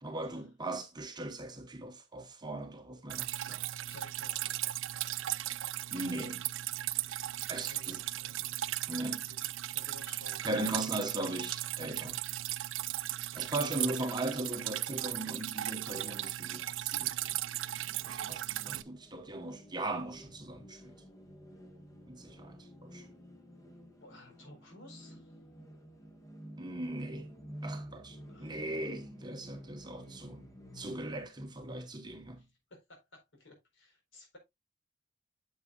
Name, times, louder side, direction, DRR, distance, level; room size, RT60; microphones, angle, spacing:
voice 1, 0.0-3.6 5.9-6.4 7.5-8.0 8.9-9.2 10.4-12.2 13.3-17.7 18.0-20.9 22.1-23.1 26.6-27.3 27.6-30.4 30.7-32.4, right 2 dB, 20° right, 1.0 m, -39 dB
Drip, 3.1-18.8, right 15 dB, 70° right, 0.4 m, -37 dB
voice 2, 3.9-4.6 7.5-8.7 9.2-10.9 24.0-25.4 28.3-28.6 32.4-34.4, left 2 dB, 65° left, 4.2 m, -55 dB
sound 1, 15.5-31.3, equal, 15° left, 1.4 m, -51 dB
9.0 x 7.3 x 2.4 m
head